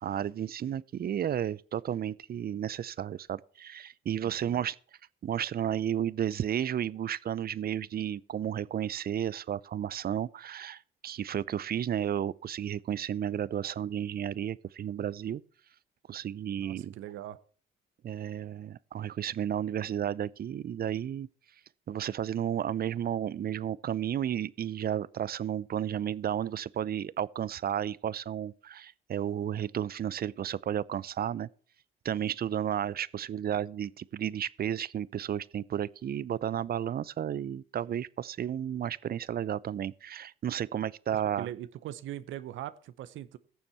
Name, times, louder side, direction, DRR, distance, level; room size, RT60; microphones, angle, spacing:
voice 1, 0.0-4.8 5.2-15.4 16.1-17.0 18.0-21.3 21.9-31.5 32.0-41.5, right 10 dB, 50° right, 0.6 m, -33 dB
voice 2, 4.2-4.6 16.6-17.4 41.1-43.4, right 12 dB, 75° right, 0.8 m, -41 dB
16.0 x 7.1 x 4.4 m
supercardioid pair, 65°, 20 cm